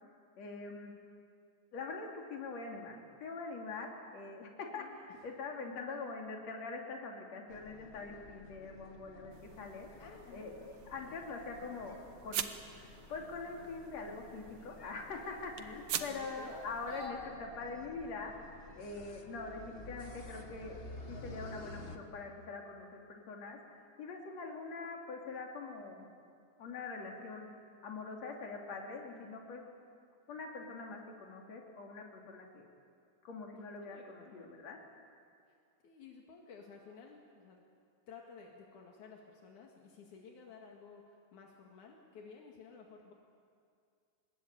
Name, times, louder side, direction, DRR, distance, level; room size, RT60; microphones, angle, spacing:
voice 1, 0.4-0.9 1.7-9.9 10.3-12.0 12.2-18.3 18.8-23.6 24.0-26.1 26.6-29.6 30.3-32.7 33.2-34.8, left 3 dB, 60° left, 0 dB, 4.0 m, -44 dB
voice 2, 4.8-5.2 10.0-10.5 15.6-16.6 29.1-29.3 33.8-34.5 35.5-35.6 35.8-37.6 38.1-43.1, left 5 dB, 80° left, 0 dB, 3.4 m, -54 dB
sound 1, 7.5-22.0, left 2 dB, 35° left, 0.9 m, -51 dB
sound 2, 9.3-17.1, right 9 dB, 65° right, 1.8 m, -45 dB
26.0 x 21.0 x 8.8 m, 2.3 s
omnidirectional pair, 3.5 m